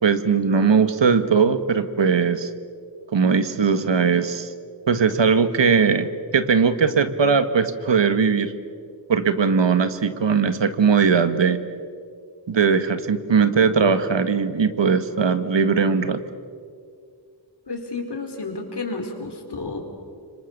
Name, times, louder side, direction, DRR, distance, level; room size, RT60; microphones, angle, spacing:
voice 1, 0.0-2.5 3.1-4.5 4.9-8.5 9.1-11.6 12.5-16.2, right 5 dB, 85° right, 10 dB, 1.7 m, -19 dB
voice 2, 17.7-19.8, left 3 dB, 65° left, 3 dB, 4.7 m, -31 dB
30.0 x 26.0 x 6.7 m, 2.2 s
wide cardioid pair, 105°, 43 cm